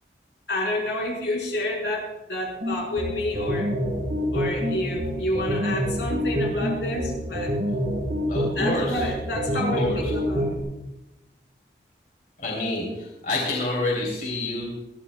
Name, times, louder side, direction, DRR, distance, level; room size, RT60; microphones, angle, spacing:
voice 1, 0.5-3.7 4.3-7.5 8.4-10.6, left 1 dB, 80° left, -1 dB, 4.5 m, -29 dB
sound 1, 2.6-10.6, equal, 65° right, 3.2 m, -27 dB
voice 2, 8.3-9.0 9.5-10.0 12.4-14.7, left 2 dB, 50° left, -2 dB, 3.1 m, -28 dB
21.0 x 14.5 x 2.2 m, 0.98 s
head